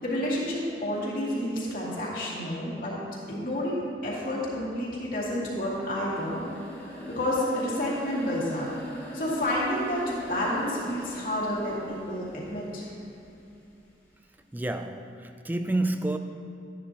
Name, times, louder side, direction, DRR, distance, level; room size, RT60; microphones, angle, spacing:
voice 1, 0.0-3.0 3.3-6.4 7.1-8.7 9.1-12.9, left 1 dB, 50° left, 2.4 m, -30 dB
sound 1, 5.5-13.5, equal, 10° left, 2.2 m, -41 dB
voice 2, 14.5-16.2, right 2 dB, 10° right, 0.4 m, -29 dB
13.0 x 10.5 x 2.9 m
head